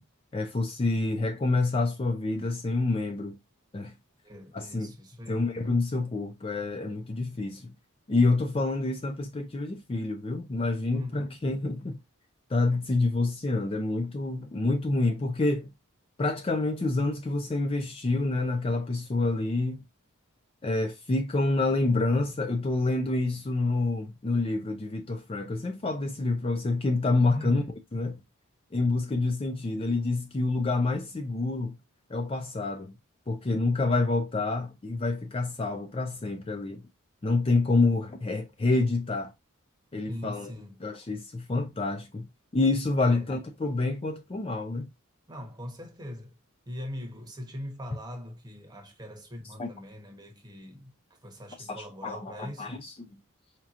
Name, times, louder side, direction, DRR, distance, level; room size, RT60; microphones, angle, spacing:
voice 1, 0.3-3.4 3.7-3.9 4.5-4.9 5.3-7.7 8.1-12.0 12.5-15.7 16.2-19.8 20.6-27.6 27.9-28.2 28.7-31.8 32.1-32.9 33.3-36.8 37.2-39.3 39.9-40.5 40.8-42.3 42.5-44.9 49.6-49.7 51.6-52.9, left 2 dB, 25° left, 0.4 m, -27 dB
voice 2, 4.2-5.4 10.9-11.4 27.3-27.7 40.1-40.8 43.0-43.3 45.3-46.4 46.7-52.8, left 1 dB, 20° right, 1.0 m, -41 dB
4.7 x 2.8 x 2.4 m
head